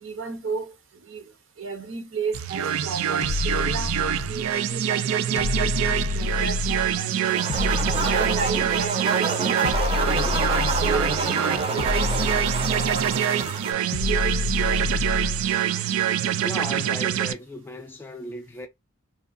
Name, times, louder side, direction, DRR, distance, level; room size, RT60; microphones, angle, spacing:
voice 1, 0.0-0.7 1.0-1.3 1.6-3.9 4.3-7.5 8.0-10.3 10.8-12.1 12.4-14.8, right 5 dB, 70° right, 0.8 m, -33 dB
sound 1, 2.3-17.3, right 10 dB, 90° right, 0.3 m, -25 dB
sound 2, 3.2-4.5 5.4-7.0 7.5-8.9 9.6-11.2 11.8-13.2 13.9-15.5, left 4 dB, 90° left, 0.4 m, -28 dB
sound 3, 7.3-13.7, right 3 dB, 30° right, 0.6 m, -28 dB
voice 2, 16.4-18.7, left 1 dB, 10° left, 0.4 m, -36 dB
2.8 x 2.4 x 2.5 m
head